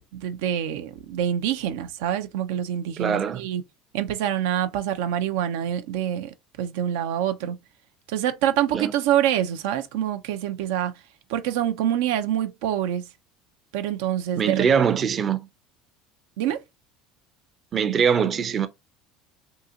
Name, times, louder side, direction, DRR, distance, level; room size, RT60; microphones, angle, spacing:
voice 1, 0.0-3.6 3.9-7.6 8.1-10.9 11.3-13.0 13.7-14.9 16.4-16.6, right 11 dB, 90° right, 0.5 m, -26 dB
voice 2, 3.0-3.5 8.7-8.9 14.4-15.4 17.7-18.7, right 7 dB, 30° right, 0.5 m, -22 dB
3.7 x 2.9 x 2.7 m
cardioid pair, 140°, 0 cm